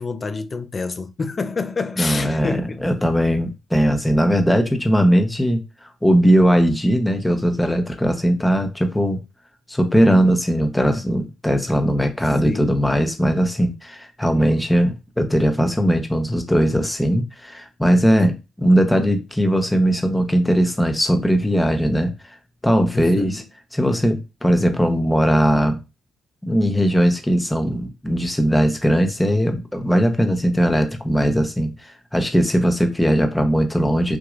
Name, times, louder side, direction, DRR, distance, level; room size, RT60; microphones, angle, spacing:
voice 1, 0.0-3.0 12.2-12.7 22.9-23.5, left 4 dB, 35° left, 0.5 m, -28 dB
voice 2, 2.0-5.6 6.0-9.2 9.7-22.1 22.6-23.4 23.7-25.8 26.4-34.2, equal, 5° left, 1.0 m, -19 dB
6.0 x 2.9 x 2.5 m
cardioid pair, 90°, 0 cm